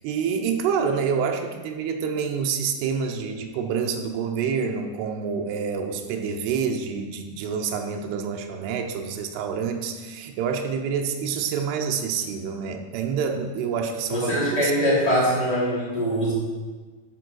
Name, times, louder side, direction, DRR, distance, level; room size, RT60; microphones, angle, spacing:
voice 1, 0.0-14.7, right 6 dB, 90° right, 4 dB, 2.7 m, -27 dB
voice 2, 14.1-16.3, equal, 10° left, -7 dB, 2.4 m, -22 dB
10.5 x 4.6 x 6.1 m, 1.4 s
omnidirectional pair, 4.7 m